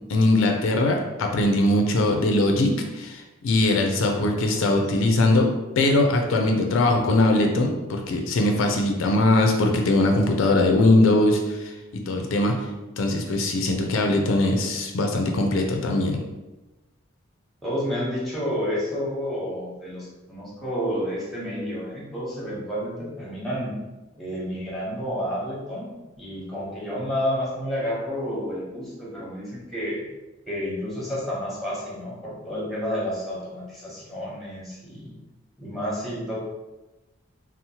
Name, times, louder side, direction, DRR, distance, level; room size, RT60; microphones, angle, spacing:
voice 1, 0.1-5.5 5.8-12.6 13.0-16.2, left 2 dB, 85° left, 3 dB, 0.4 m, -21 dB
voice 2, 17.6-23.8 24.1-25.9 26.1-30.0 30.5-35.1 35.6-36.4, equal, ahead, -6 dB, 0.8 m, -30 dB
2.8 x 2.0 x 2.8 m, 1.1 s
head